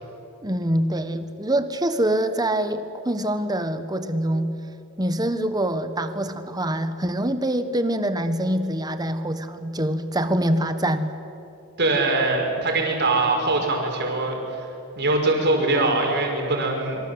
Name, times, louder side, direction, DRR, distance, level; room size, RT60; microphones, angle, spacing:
voice 1, 0.4-4.6 5.0-11.1, right 1 dB, 15° right, 10 dB, 1.4 m, -25 dB
voice 2, 11.8-14.7 15.0-17.0, right 2 dB, 50° right, 1 dB, 5.8 m, -22 dB
26.0 x 24.5 x 8.2 m, 2.9 s
head